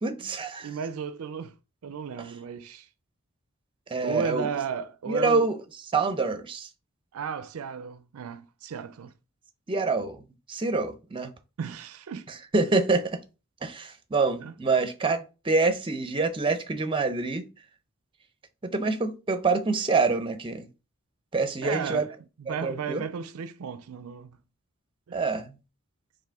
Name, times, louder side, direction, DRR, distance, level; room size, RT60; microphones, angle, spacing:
voice 1, 0.0-0.7 3.9-4.5 5.1-5.6 5.9-6.7 9.7-10.2 10.5-11.3 12.5-13.2 13.6-17.4 18.6-20.7 21.3-22.1 22.5-23.0 25.1-25.6, right 3 dB, 25° right, 0.6 m, -26 dB
voice 2, 0.6-1.5 1.8-2.9 4.0-5.5 7.1-9.1 11.6-12.3 14.4-14.5 21.6-22.1 22.4-24.3 25.1-25.2, right 6 dB, 70° right, 0.4 m, -34 dB
4.8 x 3.0 x 3.4 m
head